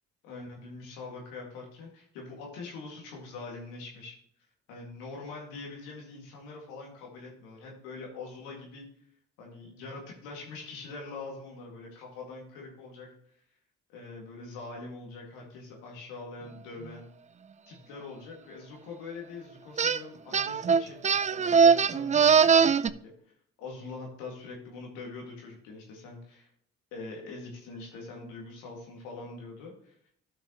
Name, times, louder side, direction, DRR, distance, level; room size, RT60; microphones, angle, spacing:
voice 1, 0.2-4.2 4.7-8.8 9.4-13.1 13.9-17.1 17.7-23.1 23.6-26.5 26.9-30.0, left 3 dB, 90° left, -1 dB, 2.1 m, -43 dB
sound 1, 19.8-20.0 20.3-22.9, right 6 dB, 20° right, 0.3 m, -21 dB
12.0 x 6.1 x 3.0 m, 0.65 s
hypercardioid pair, 50°, 35 cm